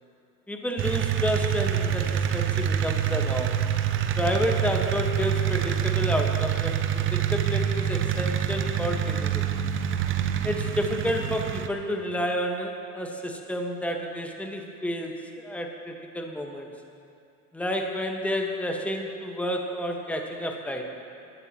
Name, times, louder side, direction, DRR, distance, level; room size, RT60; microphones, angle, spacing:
voice 1, 0.5-3.6 4.2-9.7 10.4-16.7 17.5-20.9, equal, 5° left, 2 dB, 1.4 m, -30 dB
sound 1, 0.8-11.7, right 9 dB, 25° right, 0.7 m, -26 dB
21.5 x 13.0 x 3.0 m, 2.6 s
hypercardioid pair, 95°, 45 cm